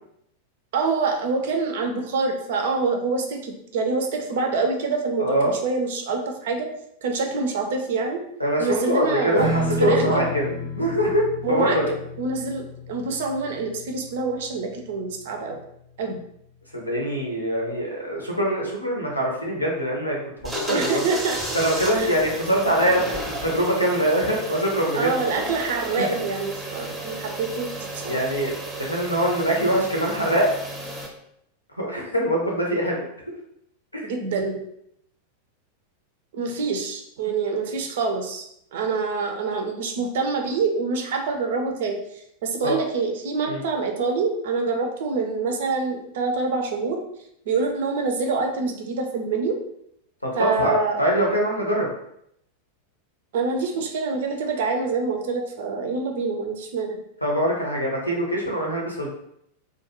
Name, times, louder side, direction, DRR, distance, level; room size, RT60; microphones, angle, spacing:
voice 1, 0.7-5.4 5.6-6.7 7.0-8.2 8.6-9.5 9.8-10.3 11.4-11.8 12.2-15.6 16.0-16.2 20.7-21.4 21.9-22.2 25.0-28.2 34.0-34.6 36.3-38.4 38.7-42.0 42.4-47.0 47.5-49.6 50.4-51.0 53.3-57.0, right 4 dB, 55° right, 4 dB, 0.4 m, -26 dB
voice 2, 5.2-5.5 8.4-11.9 16.7-21.0 21.5-25.2 26.0-26.1 28.0-28.5 28.8-30.5 31.8-33.0 42.6-42.8 43.4-43.6 50.2-51.9 57.2-59.1, equal, 85° left, -1 dB, 0.7 m, -23 dB
Strum, 9.4-16.2, equal, 45° left, 0.5 m, -32 dB
sound 1, 20.4-31.1, right 1 dB, 10° right, 0.6 m, -33 dB
2.3 x 2.2 x 2.9 m, 0.75 s
figure-of-eight pair, 90°, 0 cm